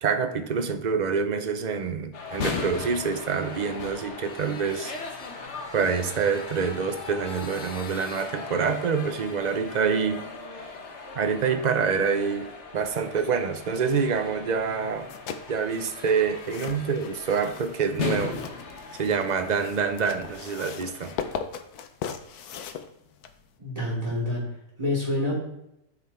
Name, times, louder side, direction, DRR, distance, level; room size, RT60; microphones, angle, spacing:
voice 1, 0.0-4.9 5.7-10.2 11.2-15.1 15.5-18.4 18.9-21.1, right 6 dB, 45° right, 0.6 m, -26 dB
sound 1, 2.1-21.3, left 4 dB, 50° left, 1.4 m, -38 dB
sound 2, 14.9-23.6, left 7 dB, 85° left, 1.3 m, -39 dB
voice 2, 23.6-24.4 24.8-25.4, left 1 dB, 25° right, 3.4 m, -27 dB
10.5 x 5.8 x 4.3 m
omnidirectional pair, 1.6 m